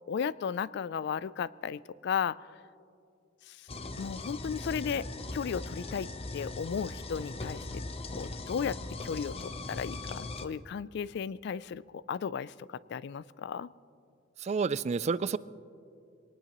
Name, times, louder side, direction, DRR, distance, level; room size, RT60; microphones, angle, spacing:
voice 1, 0.1-2.4 4.0-6.1 6.3-7.8 8.1-13.7, left 7 dB, 60° left, 19 dB, 0.3 m, -35 dB
sound 1, 3.7-10.5, left 2 dB, 30° left, 0.7 m, -39 dB
voice 2, 14.4-15.4, right 5 dB, 35° right, 17 dB, 0.3 m, -29 dB
23.5 x 19.0 x 3.0 m, 2.5 s
head